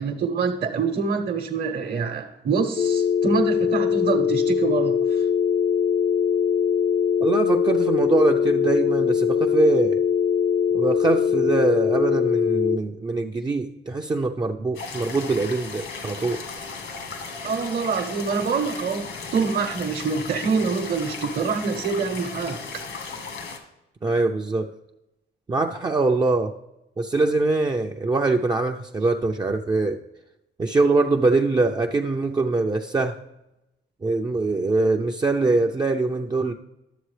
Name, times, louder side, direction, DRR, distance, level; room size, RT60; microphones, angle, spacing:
voice 1, 0.0-5.3 17.4-22.8, right 5 dB, 50° right, 0.9 m, -26 dB
sound 1, 2.8-12.8, left 7 dB, 50° left, 0.6 m, -22 dB
voice 2, 7.2-10.0 10.7-16.4 24.0-24.7 25.5-26.5 27.0-30.0 30.6-33.2 34.0-36.5, right 3 dB, 20° right, 0.5 m, -23 dB
sound 2, 14.7-23.6, left 4 dB, 70° left, 1.6 m, -36 dB
11.5 x 7.1 x 3.3 m
cardioid pair, 90°, 20 cm